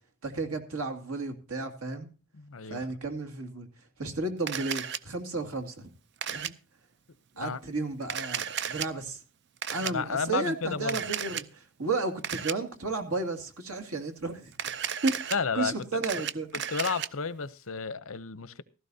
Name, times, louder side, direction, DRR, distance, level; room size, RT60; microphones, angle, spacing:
voice 1, 0.2-2.1 2.7-3.7 4.0-5.9 6.3-6.5 7.4-9.2 9.7-16.6, right 3 dB, 90° right, 2.4 m, -33 dB
voice 2, 2.4-2.8 7.3-7.6 9.8-11.0 15.3-16.0 16.7-18.6, left 5 dB, 75° left, 0.8 m, -32 dB
Camera, 4.5-5.0 6.2-6.5 8.0-8.9 9.6-9.9 10.9-11.4 12.2-12.5 14.5-15.4 15.8-17.1, right 9 dB, 50° right, 0.5 m, -33 dB
16.0 x 14.0 x 2.8 m
head